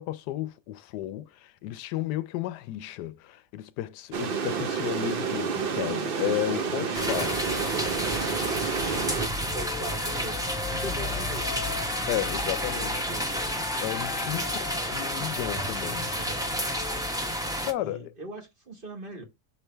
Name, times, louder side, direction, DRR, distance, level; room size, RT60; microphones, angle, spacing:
voice 1, 0.0-7.4 12.1-13.1 13.8-14.6 14.9-16.2 17.7-18.1, left 14 dB, 85° left, 1.2 m, -33 dB
sound 1, 4.1-9.3, right 6 dB, 55° right, 0.6 m, -29 dB
sound 2, 6.9-17.7, equal, 5° right, 0.7 m, -30 dB
voice 2, 8.8-10.5 10.7-11.6 12.6-13.4 14.2-14.5 16.1-16.5 17.8-19.2, right 1 dB, 35° right, 1.5 m, -41 dB
Wind instrument woodwind instrument, 9.5-13.0 13.4-17.1, left 8 dB, 65° left, 0.8 m, -41 dB
6.4 x 3.3 x 4.4 m
omnidirectional pair, 1.7 m